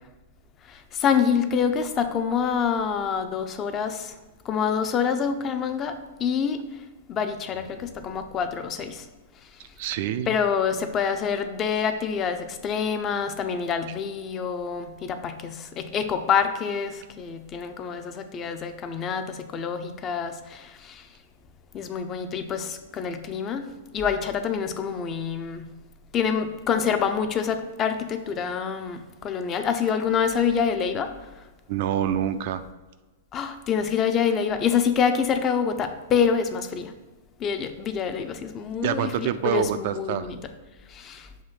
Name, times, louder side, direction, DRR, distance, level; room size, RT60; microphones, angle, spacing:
voice 1, 0.7-4.1 4.5-6.6 7.1-9.0 10.3-21.0 21.7-23.7 23.9-25.7 26.1-31.1 33.3-36.9 37.4-40.4 40.9-41.3, left 7 dB, 25° left, 8 dB, 0.5 m, -26 dB
voice 2, 9.8-10.4 31.7-32.6 38.8-40.3, right 10 dB, 50° right, 11 dB, 0.3 m, -26 dB
7.0 x 2.7 x 5.7 m, 1.2 s
figure-of-eight pair, 100°, 0 cm